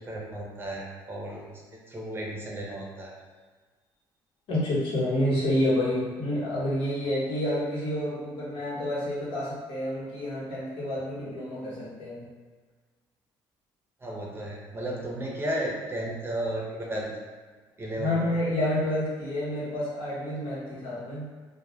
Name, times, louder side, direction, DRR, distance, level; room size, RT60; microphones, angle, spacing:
voice 1, 0.1-3.1 14.0-17.2 17.8-18.2, right 1 dB, 25° right, -2 dB, 0.6 m, -34 dB
voice 2, 4.5-12.3 17.9-21.3, left 1 dB, 70° left, -7 dB, 1.0 m, -29 dB
2.2 x 2.1 x 3.1 m, 1.4 s
supercardioid pair, 85°, 9 cm